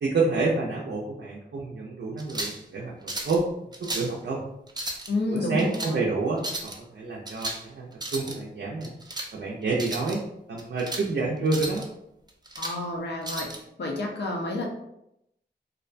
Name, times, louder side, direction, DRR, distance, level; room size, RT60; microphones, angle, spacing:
voice 1, 0.0-3.5 3.8-4.4 5.3-8.9 9.3-10.2 10.5-11.9, right 3 dB, 85° right, -3 dB, 0.4 m, -28 dB
sound 1, 2.2-2.6 3.1-3.4 3.7-4.1 4.7-5.1 5.6-5.9 6.4-6.8 7.3-7.6 7.9-8.4 8.8-9.3 9.7-10.2 10.6-11.1 11.5-11.8 12.3-12.8 13.2-13.6, right 1 dB, 25° right, 0.4 m, -34 dB
voice 2, 5.1-6.0 12.6-13.5 13.8-14.6, left 2 dB, 75° left, 0 dB, 0.5 m, -29 dB
2.5 x 2.1 x 2.5 m, 0.81 s
wide cardioid pair, 85°, 18 cm